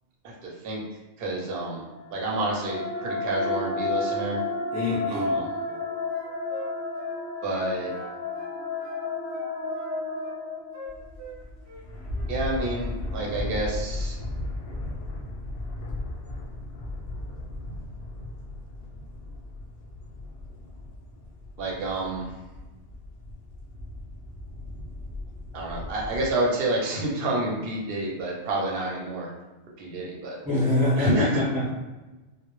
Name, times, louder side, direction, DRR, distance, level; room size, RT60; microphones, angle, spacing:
voice 1, 0.2-0.8 1.2-1.8 2.1-4.4 5.1-5.5 7.4-7.9 12.3-14.2 21.6-22.3 25.5-29.3 29.8-30.4 31.0-31.3, right 1 dB, 60° right, -3 dB, 0.8 m, -28 dB
sound 1, 1.9-11.2, left 3 dB, 25° right, 0.3 m, -32 dB
voice 2, 4.7-5.4 30.4-31.7, left 2 dB, 5° right, -10 dB, 0.9 m, -25 dB
sound 2, 5.6-5.9 6.1-7.7 7.9-9.1 9.3-10.4 10.7-11.8 12.1-12.4, left 1 dB, 90° right, 1.0 m, -44 dB
sound 3, 10.9-26.3, left 2 dB, 65° left, 0.7 m, -36 dB
2.0 x 2.0 x 2.9 m, 1.1 s
omnidirectional pair, 1.2 m